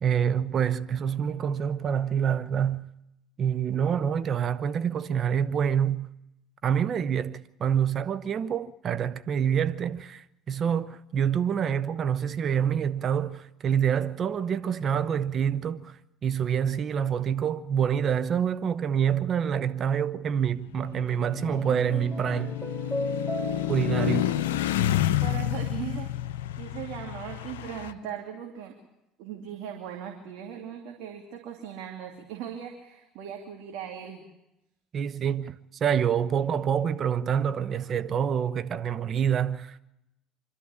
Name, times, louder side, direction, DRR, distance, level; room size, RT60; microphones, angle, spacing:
voice 1, 0.0-2.9 3.4-6.1 6.6-22.6 23.7-24.3 34.9-39.8, right 8 dB, 45° right, 0.9 m, -27 dB
sound 1, 20.5-27.9, left 13 dB, 80° left, 0.7 m, -30 dB
sound 2, 21.2-25.7, equal, 15° right, 3.3 m, -38 dB
voice 2, 24.0-24.5 25.2-26.1 26.6-28.7 29.2-34.2, right 9 dB, 65° right, 2.7 m, -39 dB
26.0 x 12.5 x 8.7 m
hypercardioid pair, 70°, 0 cm